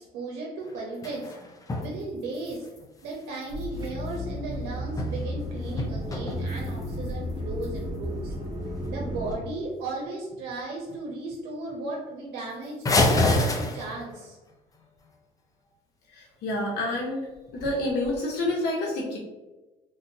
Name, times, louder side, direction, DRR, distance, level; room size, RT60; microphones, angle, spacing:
voice 1, 0.0-1.3 1.8-2.7 3.0-8.3 8.9-14.4, right 2 dB, 90° right, -2 dB, 0.6 m, -36 dB
sound 1, 0.6-1.9 2.2-4.2 4.7-5.4 5.7-7.1 7.6-7.7 8.2-8.3 8.8-8.9 9.2-9.7 10.1-10.5 10.9-11.0 11.3-11.4 11.7-11.8 12.8-14.2 17.5-18.1, left 2 dB, 20° left, 0.5 m, -28 dB
sound 2, 3.5-9.4, equal, 20° right, 0.9 m, -33 dB
voice 2, 16.1-17.2 17.5-19.2, left 1 dB, 80° left, -4 dB, 0.8 m, -28 dB
3.3 x 2.6 x 2.8 m, 1.1 s
cardioid pair, 110°, 17 cm